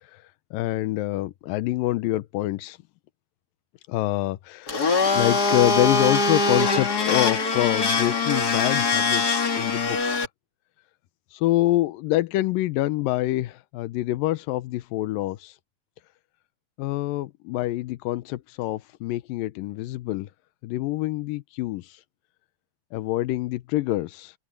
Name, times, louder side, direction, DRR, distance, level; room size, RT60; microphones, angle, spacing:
voice 1, 0.5-2.8 3.9-4.8 5.1-10.2 11.3-15.5 16.8-20.3 20.6-21.9 22.9-24.3, left 16 dB, 80° left, 2.5 m, -26 dB
Domestic sounds home sounds, 4.7-10.3, left 4 dB, 30° left, 2.1 m, -23 dB
open air
omnidirectional pair, 4.2 m